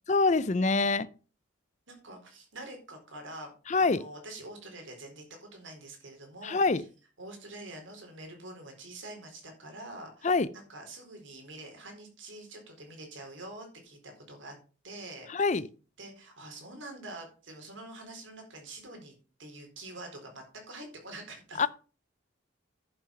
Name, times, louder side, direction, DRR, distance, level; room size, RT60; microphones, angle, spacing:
voice 1, 0.1-1.1 3.7-4.0 6.4-6.8 10.2-10.5 15.3-15.7 21.6-21.7, left 3 dB, 35° left, 0.5 m, -25 dB
voice 2, 1.9-3.5 3.8-6.6 7.2-14.5 14.8-15.3 16.0-19.1 19.4-21.7, right 2 dB, 70° right, 4.4 m, -46 dB
11.0 x 6.1 x 5.9 m
head